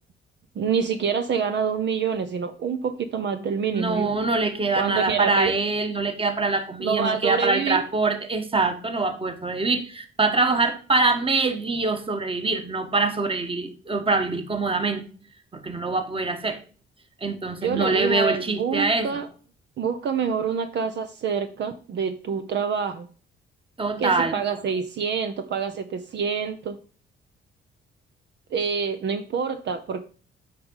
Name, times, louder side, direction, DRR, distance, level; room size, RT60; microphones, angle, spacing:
voice 1, 0.5-4.1 4.8-5.5 6.8-7.8 17.6-19.3 19.8-23.1 24.0-26.8 28.5-30.0, right 6 dB, 60° right, 8 dB, 1.0 m, -26 dB
voice 2, 3.7-15.0 15.5-16.6 17.2-19.2 23.8-24.4, right 3 dB, 25° right, 8 dB, 1.6 m, -24 dB
8.6 x 5.0 x 5.5 m, 0.40 s
cardioid pair, 90°, 20 cm